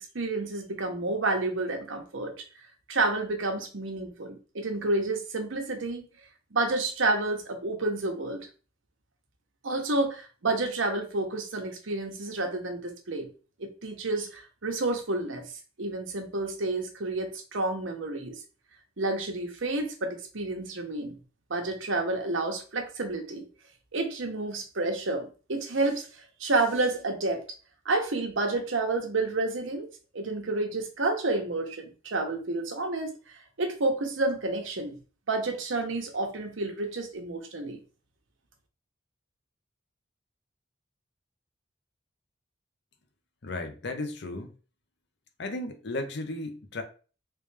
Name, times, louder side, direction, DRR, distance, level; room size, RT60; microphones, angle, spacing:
voice 1, 0.1-2.4 2.9-6.1 6.5-8.5 9.6-13.3 13.6-15.5 15.8-18.4 19.0-21.2 21.5-23.5 23.9-27.4 27.8-29.9 30.1-33.2 33.6-35.0 35.3-37.8, right 2 dB, 80° right, 1.0 m, -30 dB
voice 2, 43.4-44.5 45.4-46.8, left 2 dB, 60° left, 0.7 m, -34 dB
3.3 x 3.2 x 3.2 m
head